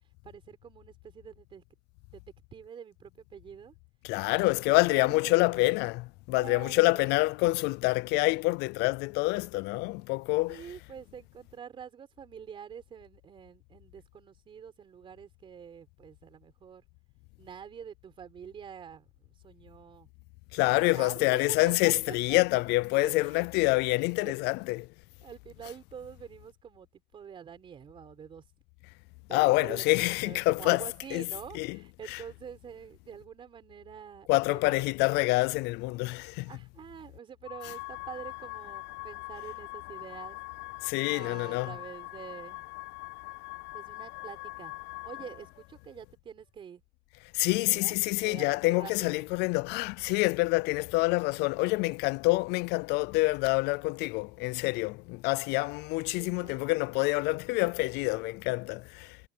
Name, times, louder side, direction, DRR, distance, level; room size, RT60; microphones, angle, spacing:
voice 1, 0.2-1.6 2.1-2.2 2.5-3.7 4.4-5.6 6.4-7.2 10.5-16.8 17.4-20.1 20.9-22.6 22.9-23.5 24.2-24.7 25.2-28.4 29.3-34.8 36.5-40.4 41.1-42.6 43.7-44.7 45.0-46.8 47.6-48.0 48.2-49.3 55.5-55.7 56.2-56.6, right 8 dB, 30° right, 4.2 m, -46 dB
voice 2, 4.0-10.6 20.5-24.9 29.3-31.3 31.5-31.8 32.1-32.2 34.3-36.5 37.6-45.2 47.3-59.2, left 23 dB, 75° left, 0.5 m, -28 dB
cardioid pair, 170°, 17 cm